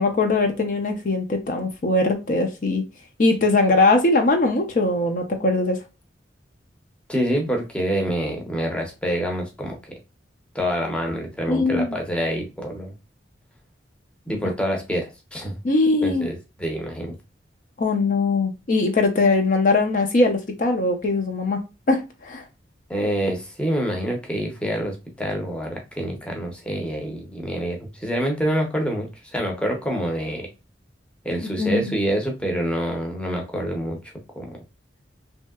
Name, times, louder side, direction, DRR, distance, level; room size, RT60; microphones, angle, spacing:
voice 1, 0.0-2.8 3.2-5.8 11.5-12.0 15.6-16.3 17.8-21.6 21.9-22.4 31.6-31.9, left 2 dB, 45° left, 0.5 m, -21 dB
voice 2, 7.1-9.9 10.5-12.9 14.3-15.6 16.0-17.1 22.9-30.5 31.2-34.0 34.4-34.6, equal, 5° left, 0.6 m, -26 dB
3.1 x 2.7 x 2.2 m
head